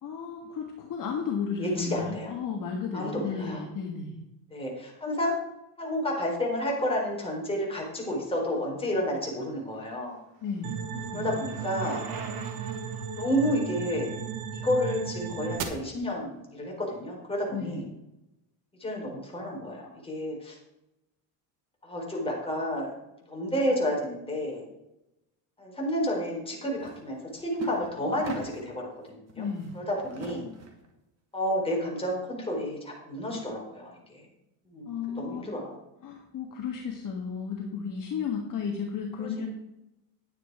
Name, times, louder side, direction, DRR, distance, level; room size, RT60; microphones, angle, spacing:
voice 1, 0.0-4.2 10.4-11.3 17.5-17.8 29.4-29.7 34.9-35.5 36.0-39.5, left 6 dB, 45° left, 1 dB, 1.6 m, -33 dB
voice 2, 1.6-2.3 2.9-3.6 4.5-5.3 5.8-10.1 11.1-12.0 13.2-14.1 14.5-17.9 18.8-20.6 21.8-22.9 23.3-24.6 25.6-29.5 29.7-30.5 31.3-34.2 34.7-35.8 39.2-39.5, equal, 10° left, -2 dB, 4.2 m, -31 dB
Bicycle, 9.5-15.5, right 5 dB, 50° right, 2.5 m, -46 dB
sound 1, 10.6-15.6, right 7 dB, 80° right, 1.8 m, -35 dB
sound 2, 26.7-27.0 27.3-28.8 29.3-30.9, right 4 dB, 35° right, 2.3 m, -43 dB
11.0 x 9.2 x 4.7 m, 0.90 s
cardioid pair, 135°, 45 cm